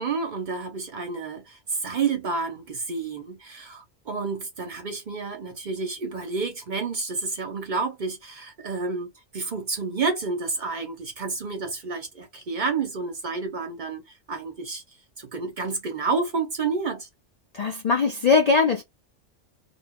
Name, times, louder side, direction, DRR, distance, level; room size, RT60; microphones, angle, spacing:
voice 1, 0.0-14.0 14.3-14.8 15.2-17.1, right 4 dB, 50° right, 0.6 m, -30 dB
voice 2, 17.5-18.8, left 4 dB, 55° left, 0.4 m, -20 dB
2.1 x 2.1 x 3.5 m
omnidirectional pair, 1.2 m